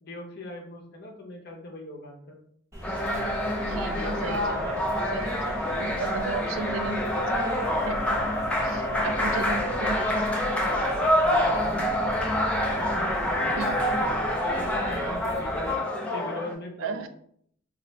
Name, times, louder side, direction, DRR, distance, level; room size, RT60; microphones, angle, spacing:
voice 1, 0.0-2.4 3.9-5.2 11.2-12.4 14.0-15.8 16.1-17.1, left 1 dB, 55° left, 1 dB, 0.7 m, -40 dB
sound 1, 2.7-15.7, equal, 15° right, 0.8 m, -40 dB
sound 2, 2.8-16.5, left 1 dB, 5° left, 0.4 m, -27 dB
voice 2, 3.7-4.8 5.1-8.3 8.6-10.3 13.5-13.8 16.8-17.1, right 6 dB, 75° right, 9 dB, 0.3 m, -36 dB
2.4 x 2.1 x 3.9 m, 0.65 s
head